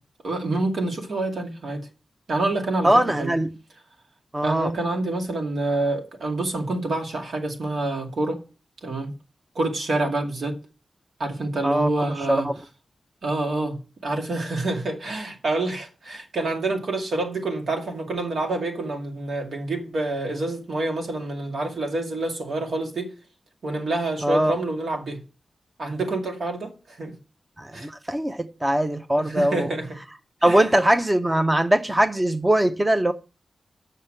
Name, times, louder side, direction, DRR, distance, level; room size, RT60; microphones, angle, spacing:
voice 1, 0.2-1.9 2.3-3.3 4.4-8.4 8.8-9.1 9.5-10.6 11.2-12.5 13.2-23.1 23.6-25.2 25.8-27.1 27.7-27.9 29.2-29.9 30.4-30.7, right 2 dB, 80° right, 2.3 m, -27 dB
voice 2, 2.8-3.5 4.3-4.7 11.6-11.9 12.3-12.5 24.2-24.5 27.6-29.7 30.4-33.1, right 1 dB, 15° right, 0.6 m, -21 dB
8.4 x 6.6 x 7.5 m
wide cardioid pair, 135°, 0 cm